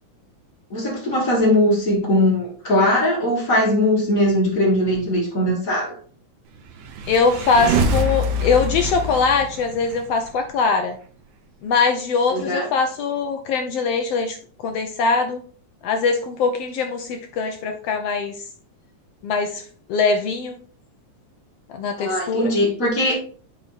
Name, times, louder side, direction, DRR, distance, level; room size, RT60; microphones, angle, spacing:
voice 1, 0.7-6.0 12.3-12.7 22.0-23.1, left 1 dB, 30° left, -2 dB, 2.2 m, -20 dB
sound 1, 6.7-10.3, right 1 dB, 90° right, 2.5 m, -24 dB
voice 2, 7.1-11.0 11.6-14.4 14.6-15.4 15.8-18.3 19.2-19.6 19.9-20.5 21.7-22.5, left 4 dB, 75° left, 5 dB, 1.5 m, -22 dB
8.8 x 3.6 x 4.1 m, 0.43 s
omnidirectional pair, 3.4 m